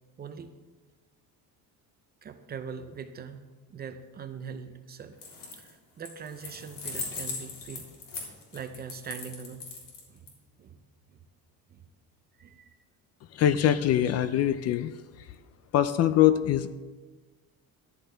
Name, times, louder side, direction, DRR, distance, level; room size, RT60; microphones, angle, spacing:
voice 1, 0.2-0.5 2.2-3.4 3.7-5.2 5.5-7.9 8.2-8.3 8.5-9.7 10.1-11.2 11.7-11.8 12.4-12.8, right 6 dB, 25° right, 8 dB, 0.5 m, -42 dB
sound 1, 5.1-5.7 6.0-10.3, left 4 dB, 60° left, 3.6 m, -39 dB
voice 2, 13.4-14.9 15.7-16.7, left 11 dB, 45° left, 13 dB, 0.4 m, -23 dB
14.0 x 12.0 x 3.4 m, 1.3 s
cardioid pair, 175°, 37 cm